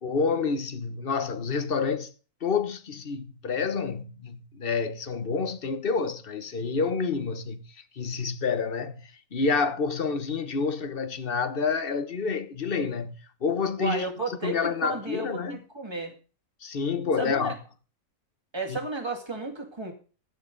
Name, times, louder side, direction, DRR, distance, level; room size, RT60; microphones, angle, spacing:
voice 1, 0.0-2.1 2.4-7.6 7.9-13.2 13.4-15.6 16.6-17.5 18.7-18.8, left 5 dB, 45° left, 1.3 m, -28 dB
voice 2, 13.8-16.1 17.2-17.5 18.5-19.9, right 3 dB, 20° right, 2.4 m, -33 dB
16.0 x 9.5 x 4.0 m
omnidirectional pair, 1.4 m